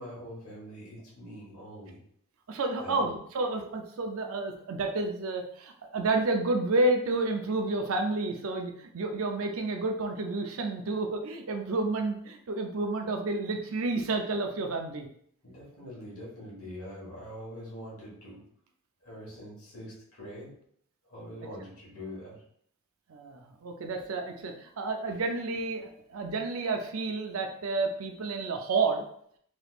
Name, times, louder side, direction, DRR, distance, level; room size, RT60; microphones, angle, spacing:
voice 1, 0.0-2.0 2.8-3.1 15.4-18.4 19.0-20.5 21.0-22.4, equal, 70° left, -4 dB, 1.4 m, -44 dB
voice 2, 2.5-15.1 23.1-29.0, right 3 dB, 70° right, 4 dB, 0.5 m, -30 dB
3.3 x 3.0 x 2.4 m, 0.66 s
head